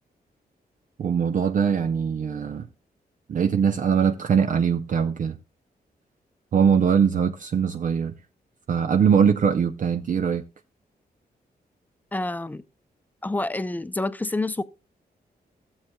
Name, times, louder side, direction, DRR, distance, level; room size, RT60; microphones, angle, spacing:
voice 1, 1.0-2.7 3.3-5.4 6.5-8.1 8.7-10.4, right 7 dB, 55° right, 0.6 m, -22 dB
voice 2, 12.1-12.6 13.2-14.6, left 2 dB, 10° left, 0.5 m, -28 dB
15.5 x 7.3 x 2.2 m
wide cardioid pair, 125°, 16 cm